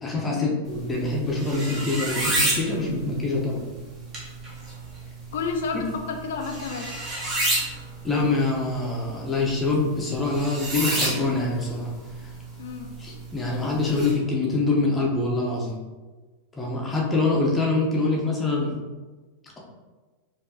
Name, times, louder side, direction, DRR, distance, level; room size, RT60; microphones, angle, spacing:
voice 1, 0.0-3.6 8.0-11.9 13.0-15.8 16.6-18.7, left 3 dB, 15° left, -3 dB, 0.8 m, -25 dB
sound 1, 0.7-14.1, right 1 dB, 25° right, 1.0 m, -31 dB
voice 2, 5.3-6.9 12.6-13.0, left 5 dB, 60° left, 4 dB, 0.4 m, -30 dB
4.4 x 2.7 x 2.7 m, 1.3 s
figure-of-eight pair, 90°, 0 cm